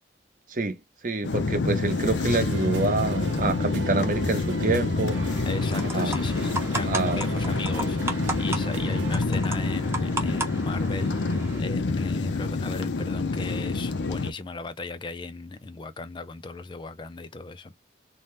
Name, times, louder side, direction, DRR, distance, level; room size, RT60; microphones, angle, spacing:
voice 1, 1.0-5.2 5.9-6.2 6.9-7.3, right 3 dB, 45° right, 0.7 m, -27 dB
sound 1, 1.2-14.3, left 3 dB, 90° left, 0.5 m, -27 dB
sound 2, 1.9-9.2, right 4 dB, 85° right, 0.6 m, -39 dB
sound 3, 5.1-11.6, right 2 dB, 15° right, 0.7 m, -35 dB
voice 2, 5.5-17.7, left 3 dB, 25° left, 0.4 m, -37 dB
2.7 x 2.2 x 3.2 m
head